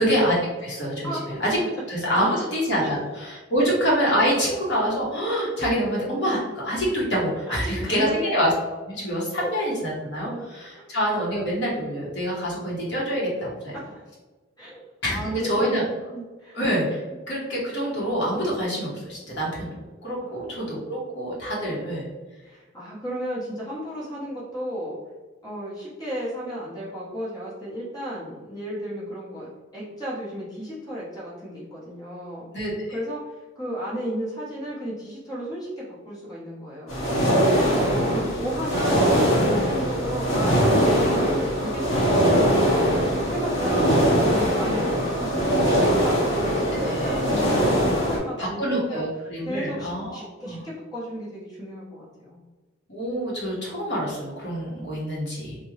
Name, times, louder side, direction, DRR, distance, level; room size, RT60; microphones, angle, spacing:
voice 1, 0.0-1.6 1.9-8.5 8.9-13.7 15.0-15.8 16.5-19.7 20.0-22.1 32.5-32.9 37.6-38.3 46.7-47.2 48.4-50.6 52.9-55.6, equal, 55° left, -5 dB, 1.0 m, -26 dB
voice 2, 1.0-1.6 2.1-2.5 2.8-3.0 3.6-3.7 7.5-8.3 9.4-9.5 10.2-10.5 10.7-10.9 13.8-14.0 14.6-16.6 20.2-20.5 22.4-25.0 25.4-32.5 32.9-37.1 37.7-37.8 38.1-49.0 49.4-52.4, equal, 20° left, -8 dB, 0.9 m, -34 dB
sound 1, 36.9-48.2, equal, 90° left, 1.1 m, -21 dB
3.5 x 2.2 x 3.1 m, 1.2 s
head